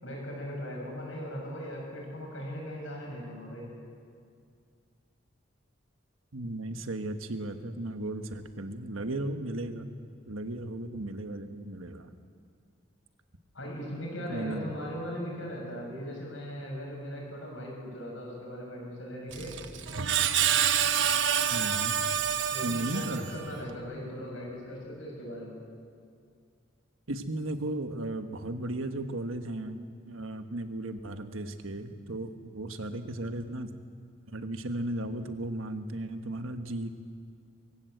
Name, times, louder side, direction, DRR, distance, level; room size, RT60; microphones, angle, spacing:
voice 1, 0.0-3.7 13.5-19.5 22.5-25.6, equal, 75° left, -2 dB, 7.6 m, -39 dB
voice 2, 6.3-9.9 10.3-12.1 14.3-14.6 21.5-22.0 22.6-23.3 27.1-33.7 34.3-36.9, right 1 dB, 90° right, 8 dB, 1.4 m, -35 dB
Screech, 19.3-23.6, right 9 dB, 65° right, 1.0 m, -28 dB
23.5 x 16.0 x 7.9 m, 2.3 s
head